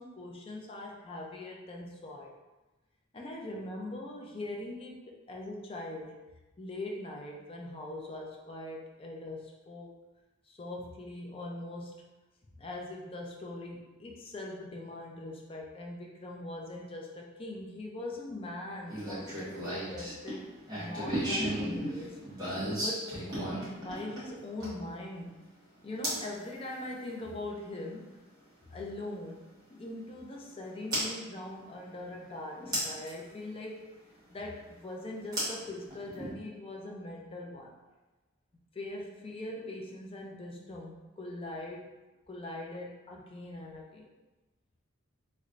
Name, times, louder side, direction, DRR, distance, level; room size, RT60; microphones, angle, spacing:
voice 1, 0.0-2.3 3.1-6.2 6.6-9.9 10.5-12.0 12.6-23.1 23.7-25.3 25.8-28.2 28.7-29.4 29.7-33.9 34.3-37.8 38.7-41.8 42.3-44.1, left 1 dB, 25° left, -1 dB, 0.5 m, -41 dB
sound 1, 18.9-24.9 26.0-26.3 28.2-28.3 30.9-31.1 32.7-33.1 35.3-36.3, right 1 dB, 20° right, 1.2 m, -34 dB
3.1 x 3.1 x 2.5 m, 1.1 s
head